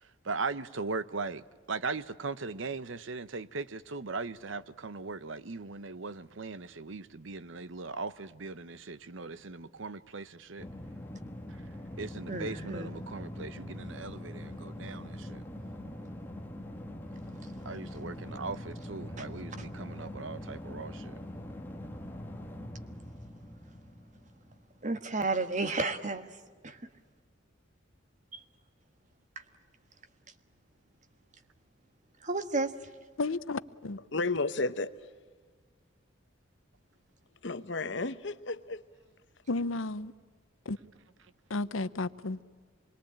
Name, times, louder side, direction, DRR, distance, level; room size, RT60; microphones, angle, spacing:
voice 1, 0.2-1.4 1.7-10.7 11.5-11.6 12.0-15.4 17.6-21.2, right 4 dB, 70° right, 0.9 m, -39 dB
sound 1, 10.6-25.0, left 1 dB, 10° left, 1.4 m, -43 dB
voice 2, 12.3-12.9 19.2-19.3 24.8-26.3 26.6-26.8 28.3-28.4 32.2-32.7, right 3 dB, 40° right, 1.5 m, -32 dB
voice 3, 33.2-34.0 39.5-40.1 40.7-40.8 41.5-42.4, left 3 dB, 85° left, 0.8 m, -32 dB
voice 4, 34.1-34.9 37.4-38.8, left 3 dB, 60° left, 1.0 m, -32 dB
26.5 x 22.0 x 8.8 m
head